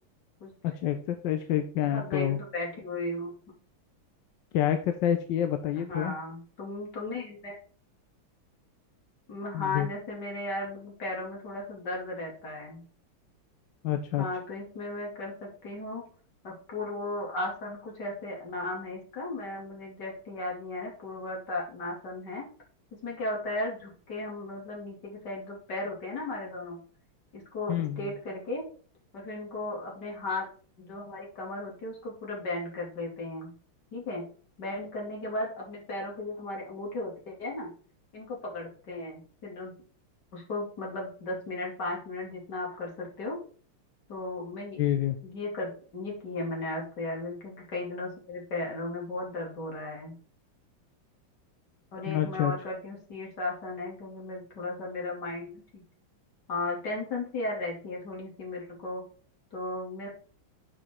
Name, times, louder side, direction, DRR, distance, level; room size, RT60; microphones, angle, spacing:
voice 1, 0.6-2.4 4.5-6.1 9.5-9.9 13.8-14.3 27.7-28.0 44.8-45.2 52.1-52.5, left 11 dB, 70° left, 7 dB, 1.2 m, -28 dB
voice 2, 1.9-3.3 5.8-7.6 9.3-12.8 14.2-16.0 16.4-22.4 23.0-26.8 27.3-28.6 29.1-30.5 30.8-33.5 33.9-34.2 34.6-37.7 38.1-39.7 40.3-43.4 44.1-44.9 45.2-50.1 51.9-55.8 56.5-59.0 59.5-60.1, left 2 dB, 50° left, -2 dB, 3.1 m, -35 dB
9.9 x 5.1 x 3.6 m, 0.43 s
omnidirectional pair, 2.4 m